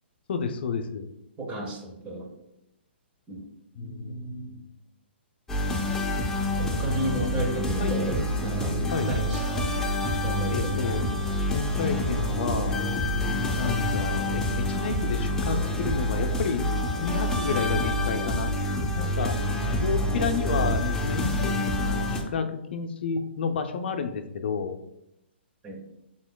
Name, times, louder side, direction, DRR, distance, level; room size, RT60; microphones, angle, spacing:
voice 1, 0.3-1.1 3.8-4.7 6.6-6.9 7.2-7.4 7.8-8.1 8.9-9.1 10.5-11.1 11.5-12.8 13.5-19.4 19.8-24.7, left 5 dB, 65° left, 5 dB, 0.5 m, -31 dB
voice 2, 1.4-2.3 3.3-3.5 3.8-4.5 6.6-9.7 10.2-10.9 20.2-20.3 25.6-25.9, right 1 dB, 20° right, 2 dB, 0.8 m, -33 dB
sound 1, 5.5-22.2, left 1 dB, 5° left, 0.6 m, -27 dB
6.0 x 3.9 x 2.2 m, 0.84 s
hypercardioid pair, 140°, 6 cm